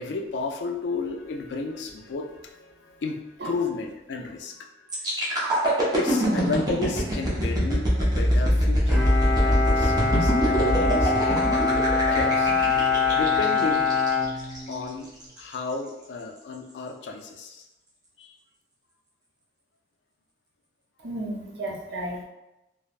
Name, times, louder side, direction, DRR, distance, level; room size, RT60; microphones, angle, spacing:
voice 1, 0.0-9.0 9.4-13.9 14.7-15.1 15.4-17.7 18.2-18.3, left 3 dB, 75° left, 3 dB, 0.4 m, -33 dB
sound 1, 4.9-14.7 15.2-15.4, equal, 20° right, 0.6 m, -24 dB
Bowed string instrument, 8.9-15.0, left 4 dB, ahead, 1.0 m, -24 dB
voice 2, 21.0-22.2, right 1 dB, 70° right, -2 dB, 0.6 m, -33 dB
3.1 x 2.0 x 2.4 m, 0.95 s
head